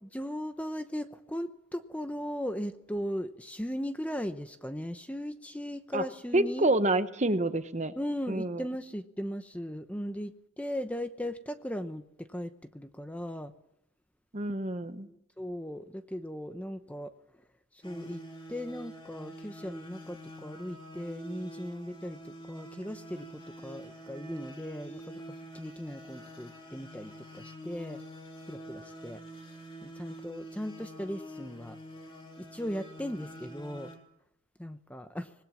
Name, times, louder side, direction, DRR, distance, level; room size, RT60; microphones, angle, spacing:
voice 1, 0.0-6.7 8.0-10.3 10.6-13.5 15.0-17.1 17.8-18.2 18.5-28.0 28.5-29.2 29.8-31.8 32.4-33.9 34.6-35.3, equal, 5° left, 9 dB, 0.8 m, -38 dB
voice 2, 6.3-7.9 8.3-8.6 14.3-15.1, right 2 dB, 30° right, 11 dB, 1.0 m, -28 dB
sound 1, 17.8-34.0, right 1 dB, 25° left, 3.4 m, -46 dB
25.5 x 19.5 x 7.3 m, 0.80 s
head